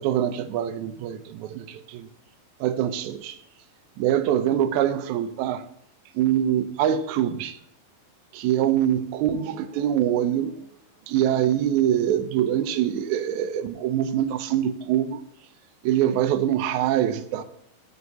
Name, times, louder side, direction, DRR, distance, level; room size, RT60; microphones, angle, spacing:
voice 1, 0.0-2.1 2.6-3.4 4.0-5.6 6.2-7.6 8.3-10.6 11.1-15.2 15.8-17.4, right 10 dB, 80° right, 1.7 m, -24 dB
7.3 x 6.4 x 6.9 m
omnidirectional pair, 4.3 m